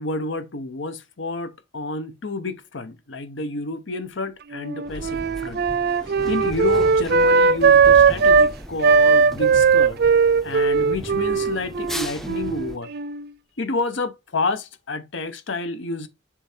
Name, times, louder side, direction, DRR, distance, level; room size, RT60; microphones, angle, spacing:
voice 1, 0.0-5.6 6.1-10.0 10.4-12.9 13.6-16.1, left 2 dB, 70° left, 0.9 m, -29 dB
Wind instrument woodwind instrument, 4.5-8.5 8.8-13.3, right 5 dB, 55° right, 0.5 m, -18 dB
sound 1, 4.9-12.8, equal, ahead, 0.5 m, -36 dB
6.9 x 3.3 x 4.4 m
head